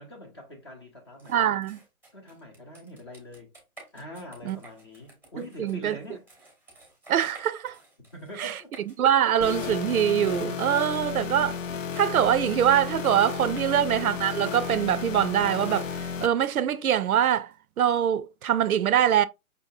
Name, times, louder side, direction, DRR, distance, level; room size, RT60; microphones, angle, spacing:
voice 1, 0.0-1.6 2.1-3.5 3.9-6.2 8.0-8.7 13.4-13.7, left 1 dB, 20° left, 0.7 m, -44 dB
sound 1, 1.2-17.6, right 2 dB, 5° left, 1.0 m, -54 dB
voice 2, 1.3-1.8 4.5-4.6 5.6-6.0 7.1-7.8 8.4-8.6 9.0-11.6 12.0-15.9 16.2-17.5 17.8-19.3, right 10 dB, 75° right, 0.6 m, -23 dB
sound 2, 9.4-16.3, left 6 dB, 60° left, 0.7 m, -33 dB
5.6 x 2.7 x 2.7 m
hypercardioid pair, 160°, 43 cm